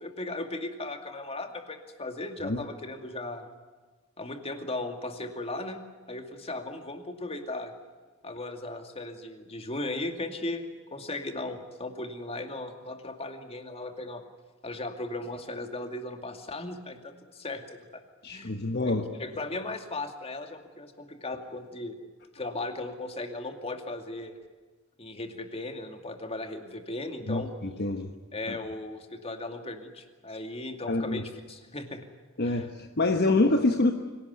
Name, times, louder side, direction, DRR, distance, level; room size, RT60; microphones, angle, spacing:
voice 1, 0.0-3.5 4.2-5.8 6.1-7.7 8.2-14.2 14.6-18.0 18.3-18.5 18.8-22.0 22.3-24.4 25.0-27.5 28.3-32.0 32.4-32.7, left 2 dB, 30° left, 6 dB, 2.4 m, -37 dB
voice 2, 18.2-19.0 27.3-28.1 28.5-28.6 30.9-31.2 32.4-33.9, left 2 dB, 50° left, 6 dB, 1.3 m, -26 dB
25.0 x 17.5 x 9.6 m, 1.4 s
head